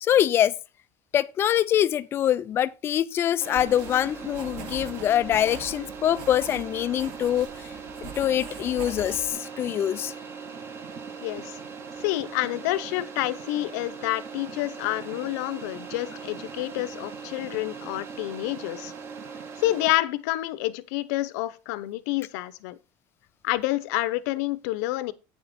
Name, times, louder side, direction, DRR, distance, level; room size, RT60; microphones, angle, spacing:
voice 1, 0.0-0.6 1.1-7.7 8.0-10.1, left 11 dB, 25° left, 0.3 m, -24 dB
sound 1, 3.4-19.9, right 5 dB, 30° right, 1.0 m, -40 dB
sound 2, 3.5-9.3, right 6 dB, 70° right, 1.9 m, -43 dB
voice 2, 11.2-11.6 12.0-18.9 19.6-22.8 23.4-25.1, left 17 dB, 80° left, 0.7 m, -28 dB
8.8 x 7.0 x 4.1 m
cardioid pair, 175°, 9 cm